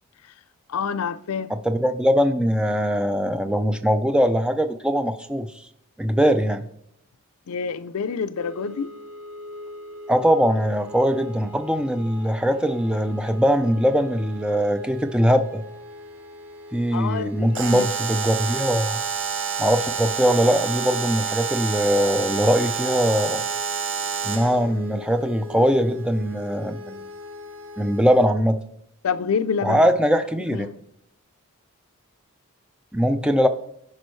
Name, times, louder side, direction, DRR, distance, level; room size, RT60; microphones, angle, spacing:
voice 1, 0.7-1.5 7.5-8.9 16.9-17.9 29.0-29.9 30.5-30.7, left 6 dB, 80° left, 0.4 m, -27 dB
voice 2, 1.5-5.5 6.0-6.7 10.1-15.6 16.7-19.0 19.6-23.4 24.2-27.0 27.8-28.6 29.6-30.7 32.9-33.5, equal, 5° right, 0.4 m, -21 dB
sound 1, 8.4-28.3, left 2 dB, 85° right, 1.7 m, -42 dB
Alarm, 17.5-24.6, right 7 dB, 55° right, 0.8 m, -28 dB
14.5 x 5.3 x 3.1 m
head